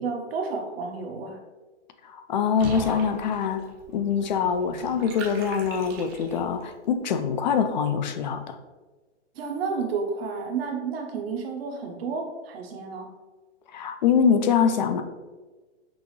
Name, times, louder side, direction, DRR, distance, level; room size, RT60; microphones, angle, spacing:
voice 1, 0.0-1.4 9.3-13.1, right 5 dB, 55° right, 3 dB, 0.9 m, -31 dB
voice 2, 2.0-3.6 3.9-8.6 13.7-15.0, left 7 dB, 40° left, 9 dB, 0.4 m, -24 dB
Water / Bathtub (filling or washing), 2.5-6.6, right 3 dB, 20° right, 0.6 m, -39 dB
6.1 x 2.5 x 3.1 m, 1.3 s
hypercardioid pair, 150°, 36 cm